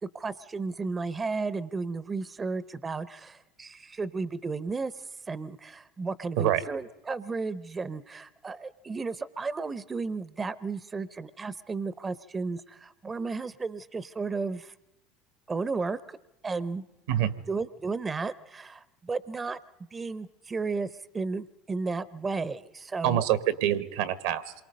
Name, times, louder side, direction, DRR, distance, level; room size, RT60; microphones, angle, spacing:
voice 1, 0.0-14.7 15.5-16.2 16.4-16.8 17.5-19.6 19.9-23.2, right 4 dB, 25° right, 17 dB, 0.7 m, -33 dB
voice 2, 23.0-24.5, right 11 dB, 80° right, 14 dB, 1.5 m, -26 dB
27.0 x 23.5 x 5.3 m, 0.95 s
hypercardioid pair, 90°, 0 cm